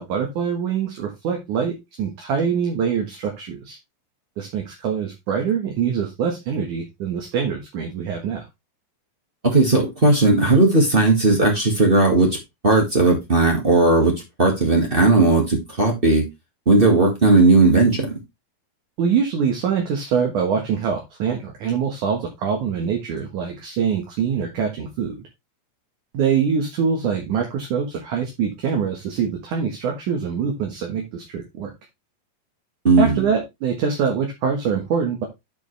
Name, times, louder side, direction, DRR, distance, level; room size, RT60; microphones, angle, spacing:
voice 1, 0.0-3.8 4.4-8.4 19.0-25.2 26.1-31.7 33.0-35.3, right 6 dB, 60° right, 2.6 m, -24 dB
voice 2, 9.4-12.4 12.6-16.3 16.6-18.2 32.8-33.2, right 2 dB, 35° right, 0.8 m, -16 dB
10.5 x 5.1 x 3.3 m
omnidirectional pair, 4.4 m